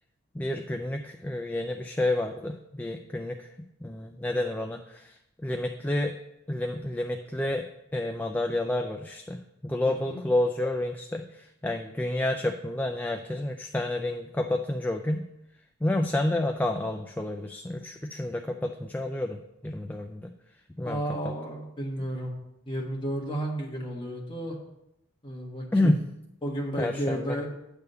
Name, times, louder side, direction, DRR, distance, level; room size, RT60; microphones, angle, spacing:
voice 1, 0.3-3.5 3.8-6.1 6.5-7.7 7.9-15.2 15.8-20.3 20.8-21.0 25.7-26.0 26.8-27.4, left 1 dB, 10° left, 4 dB, 0.3 m, -29 dB
voice 2, 9.8-10.2 20.8-22.3 22.7-24.6 25.2-25.9 26.4-27.5, right 1 dB, 25° left, -1 dB, 1.5 m, -32 dB
9.3 x 3.5 x 6.7 m, 0.84 s
head